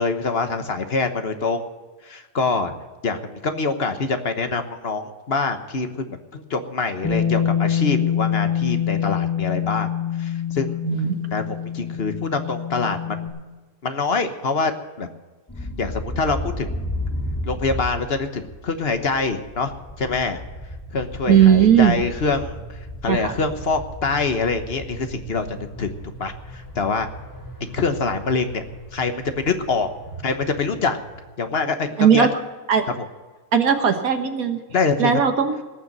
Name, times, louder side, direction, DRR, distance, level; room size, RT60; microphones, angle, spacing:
voice 1, 0.0-1.6 2.0-2.7 3.0-9.9 10.2-10.8 11.3-13.2 13.8-14.7 15.0-15.1 15.8-16.7 17.4-20.4 20.9-22.6 23.0-25.9 26.2-27.1 27.7-28.6 28.9-29.9 30.2-31.0 31.4-32.3 34.7-35.1, left 4 dB, 45° left, 8 dB, 1.2 m, -25 dB
Bass guitar, 7.0-13.3, left 9 dB, 85° left, 3.2 m, -25 dB
voice 2, 10.8-11.2 21.3-21.9 23.1-23.3 32.0-32.3 32.7-32.9 33.5-34.6 35.0-35.5, right 8 dB, 65° right, 7 dB, 1.7 m, -17 dB
sound 1, 15.5-31.3, equal, 10° left, 2.0 m, -35 dB
18.5 x 6.9 x 7.9 m, 1.3 s
omnidirectional pair, 1.7 m